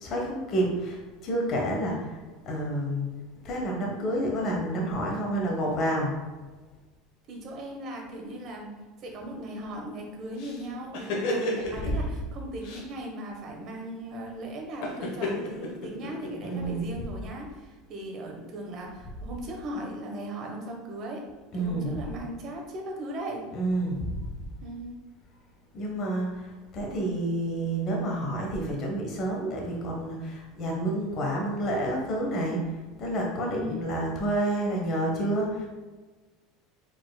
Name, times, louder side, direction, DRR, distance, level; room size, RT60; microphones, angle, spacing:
voice 1, 0.0-2.2 2.4-3.1 3.4-6.1 16.4-16.8 21.5-21.9 23.5-24.0 25.7-32.7 33.0-35.7, right 1 dB, 45° left, -1 dB, 1.0 m, -29 dB
voice 2, 7.3-8.7 9.0-21.2 21.5-23.4 24.6-25.0 33.4-33.8, right 1 dB, 50° right, 1 dB, 1.1 m, -38 dB
sound 1, 10.4-12.0 12.6-12.9 14.8-16.5, left 1 dB, 70° left, 1.1 m, -32 dB
4.6 x 4.2 x 2.2 m, 1.3 s
hypercardioid pair, 95°, 0 cm